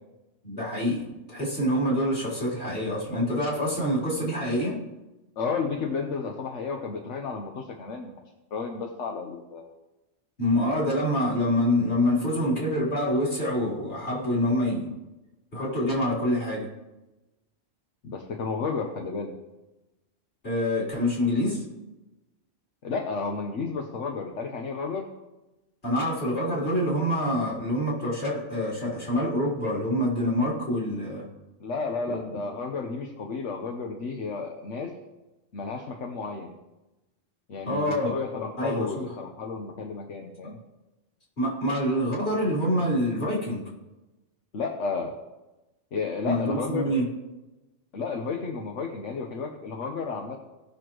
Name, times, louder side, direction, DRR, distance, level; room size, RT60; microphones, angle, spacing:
voice 1, 0.4-4.8 10.4-14.9 15.5-16.7 20.4-21.6 25.8-31.2 32.1-32.3 37.7-38.1 38.6-39.1 41.4-43.7 46.2-47.0, equal, 55° left, -7 dB, 4.1 m, -26 dB
voice 2, 5.4-8.1 8.5-9.7 18.0-19.3 22.8-25.1 31.6-34.9 35.5-36.5 37.5-40.6 44.5-45.1 45.9-46.9 47.9-50.4, left 4 dB, 80° left, 2 dB, 1.3 m, -32 dB
18.0 x 6.3 x 3.1 m, 1.0 s
omnidirectional pair, 1.2 m